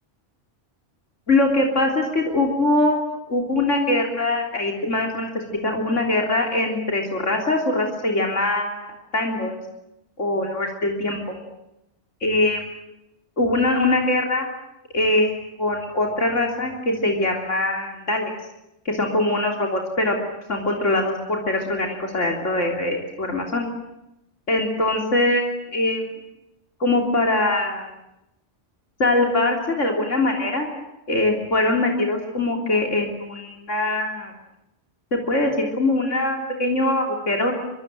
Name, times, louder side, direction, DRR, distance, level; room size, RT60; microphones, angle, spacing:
voice 1, 1.3-9.5 10.2-11.4 12.2-12.6 13.4-14.5 14.9-15.3 15.6-18.3 18.9-20.2 20.5-23.7 24.5-26.0 26.8-27.9 29.0-30.7 31.1-34.3 35.1-37.5, left 2 dB, 90° left, 1 dB, 3.9 m, -22 dB
25.5 x 24.0 x 7.7 m, 0.88 s
omnidirectional pair, 1.2 m